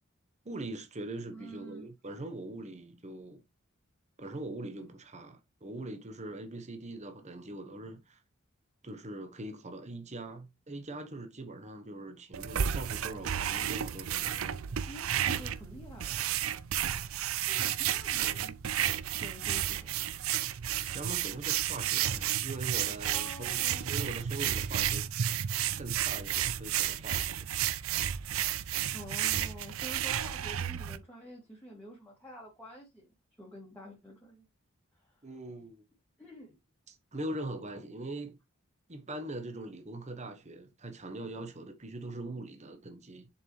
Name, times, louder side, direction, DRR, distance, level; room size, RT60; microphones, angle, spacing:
voice 1, 0.4-3.4 4.2-8.2 8.8-14.5 20.9-25.1 25.8-27.6 35.2-35.8 36.9-38.4 38.9-43.3, right 2 dB, 35° right, 1.2 m, -42 dB
voice 2, 1.3-1.9 14.9-16.3 17.5-18.6 19.0-20.1 23.1-24.2 28.8-33.1 33.4-34.5 34.9-35.3 36.2-36.6, equal, 10° left, 2.3 m, -48 dB
sound 1, 12.3-31.0, right 10 dB, 90° right, 0.5 m, -32 dB
7.0 x 5.6 x 3.2 m
head